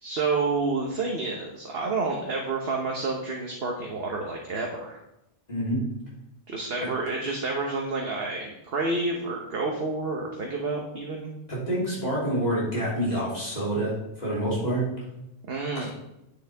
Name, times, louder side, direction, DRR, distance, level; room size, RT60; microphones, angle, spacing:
voice 1, 0.0-5.0 6.5-11.3 15.5-15.9, right 3 dB, 55° right, 0 dB, 1.4 m, -29 dB
voice 2, 5.5-5.8 11.5-14.9 15.8-15.9, right 1 dB, 35° left, -7 dB, 3.6 m, -27 dB
9.7 x 9.7 x 3.5 m, 0.88 s
omnidirectional pair, 1.2 m